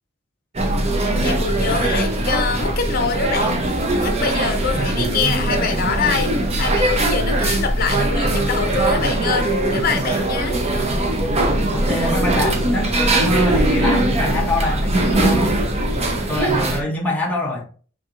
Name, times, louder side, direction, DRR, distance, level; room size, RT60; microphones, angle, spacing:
sound 1, 0.5-16.8, right 1 dB, 35° right, 0.7 m, -20 dB
voice 1, 1.2-10.6, left 5 dB, 50° left, 0.7 m, -25 dB
voice 2, 4.7-5.2 11.7-15.6 16.3-17.6, left 1 dB, 10° left, 0.8 m, -24 dB
4.5 x 3.7 x 2.5 m
head